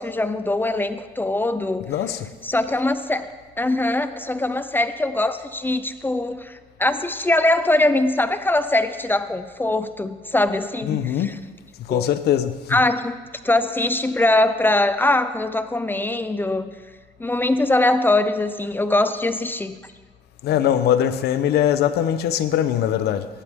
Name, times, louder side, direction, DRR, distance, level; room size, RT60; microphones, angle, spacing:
voice 1, 0.0-1.9 2.4-3.3 3.6-11.3 11.9-12.1 12.7-13.2 13.4-16.7 17.2-19.8, left 2 dB, 10° left, 0.6 m, -22 dB
voice 2, 1.9-2.3 10.8-11.4 11.9-12.8 20.4-23.3, left 10 dB, 75° left, 0.9 m, -21 dB
18.5 x 11.5 x 3.7 m
cardioid pair, 110°, 17 cm